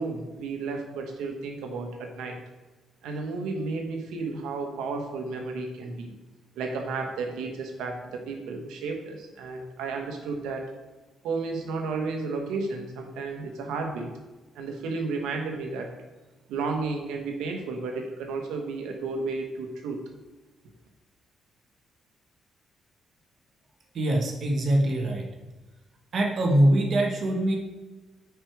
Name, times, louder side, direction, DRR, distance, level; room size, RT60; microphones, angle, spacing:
voice 1, 0.0-2.4 3.0-6.1 6.5-10.7 11.2-14.1 14.5-15.9 16.5-20.0, right 3 dB, 90° right, 4 dB, 1.3 m, -32 dB
voice 2, 23.9-25.3 26.1-27.6, right 1 dB, 55° right, 1 dB, 1.4 m, -23 dB
9.7 x 4.8 x 4.7 m, 1.2 s
cardioid pair, 90°, 0 cm